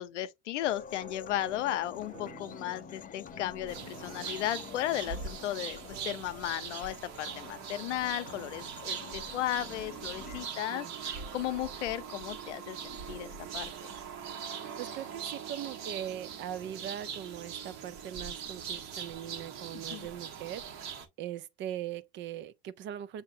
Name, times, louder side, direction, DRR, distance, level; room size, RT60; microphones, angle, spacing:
voice 1, 0.0-5.8 6.0-13.9 19.7-20.1, left 13 dB, 90° left, 0.7 m, -35 dB
sound 1, 0.6-10.5, left 7 dB, 25° left, 0.6 m, -48 dB
sound 2, 0.6-17.5, right 9 dB, 85° right, 1.0 m, -56 dB
sound 3, 3.7-21.1, right 7 dB, 50° right, 1.3 m, -41 dB
voice 2, 14.8-23.2, right 11 dB, 35° right, 0.4 m, -40 dB
6.5 x 2.7 x 2.7 m
supercardioid pair, 105°, 35 cm